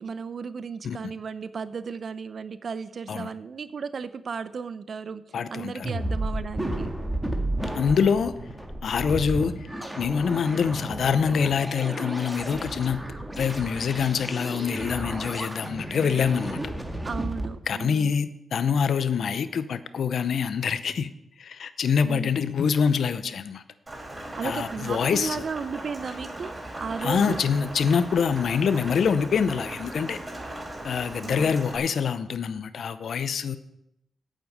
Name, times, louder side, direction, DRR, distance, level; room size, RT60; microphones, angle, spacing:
voice 1, 0.0-6.9 17.0-18.1 22.0-22.4 24.4-27.4 31.2-31.6, right 5 dB, 60° right, 14 dB, 0.6 m, -35 dB
voice 2, 5.3-5.9 7.7-8.3 8.8-9.7 10.0-13.0 13.4-16.6 17.7-21.1 21.4-23.6 24.4-25.4 27.0-30.2 30.8-33.6, left 6 dB, 75° left, 13 dB, 0.7 m, -25 dB
sound 1, 5.8-17.5, right 1 dB, 10° right, 1.9 m, -33 dB
Rain, 23.9-31.8, right 1 dB, 25° right, 4.5 m, -38 dB
8.8 x 7.4 x 8.0 m, 0.84 s
cardioid pair, 55°, 0 cm